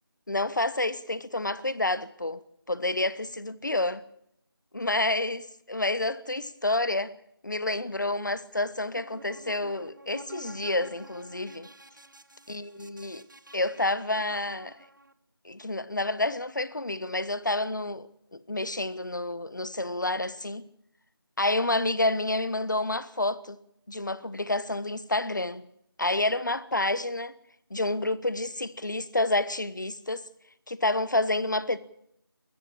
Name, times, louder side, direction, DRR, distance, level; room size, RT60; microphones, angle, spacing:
voice 1, 0.3-2.4 2.7-4.0 4.7-7.1 7.4-11.7 12.5-13.3 13.5-14.8 15.4-20.6 21.4-23.6 23.9-25.7 26.0-27.3 27.7-30.3 30.7-31.8, left 2 dB, 50° left, 1.2 m, -29 dB
sound 1, 8.8-15.1, right 1 dB, 50° right, 1.4 m, -49 dB
23.0 x 13.5 x 8.8 m
figure-of-eight pair, 175°, 13 cm